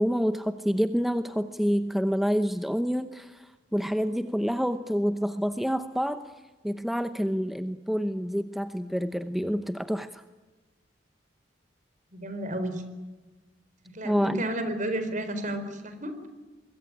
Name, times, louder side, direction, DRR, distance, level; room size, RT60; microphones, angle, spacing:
voice 1, 0.0-6.2 6.6-10.2 14.0-14.4, equal, ahead, 10 dB, 0.8 m, -27 dB
voice 2, 12.1-12.8 13.8-16.3, right 1 dB, 45° right, 9 dB, 4.4 m, -32 dB
25.0 x 21.5 x 9.9 m, 1.3 s
head